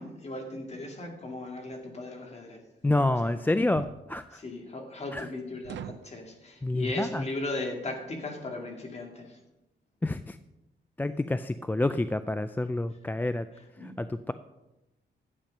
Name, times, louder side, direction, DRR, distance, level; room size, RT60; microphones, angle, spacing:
voice 1, 0.0-2.6 3.0-3.5 4.3-9.4 13.8-13.9, left 2 dB, 35° left, 2 dB, 2.3 m, -37 dB
sound 1, 1.6-1.8 3.7-4.0 5.6-6.1, right 9 dB, 80° right, 0.5 m, -41 dB
voice 2, 2.8-4.4 5.1-5.3 6.6-7.2 10.0-10.4 11.0-13.5 13.8-14.3, left 2 dB, 10° left, 12 dB, 0.3 m, -28 dB
12.0 x 8.9 x 5.3 m, 0.97 s
wide cardioid pair, 125°, 19 cm